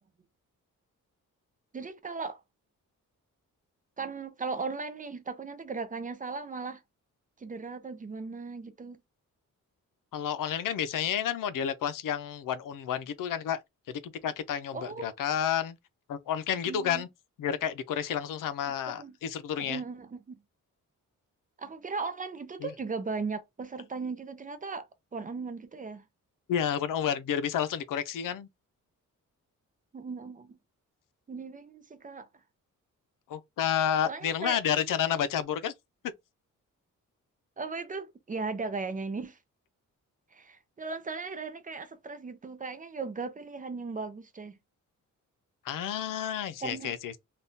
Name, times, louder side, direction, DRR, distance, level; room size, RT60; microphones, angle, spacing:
voice 1, 1.7-2.4 4.0-6.8 7.4-9.0 14.7-15.1 16.7-17.0 18.9-19.1 19.6-20.3 21.6-26.0 29.9-30.6 31.3-32.3 34.1-34.6 37.6-39.4 40.3-44.6 46.6-46.9, right 4 dB, 25° right, 0.4 m, -37 dB
voice 2, 10.1-13.6 13.9-15.8 16.1-17.1 17.4-19.8 22.6-22.7 26.5-28.5 33.3-35.7 45.6-47.2, left 9 dB, 85° left, 0.6 m, -30 dB
3.5 x 2.3 x 2.6 m
wide cardioid pair, 140°, 31 cm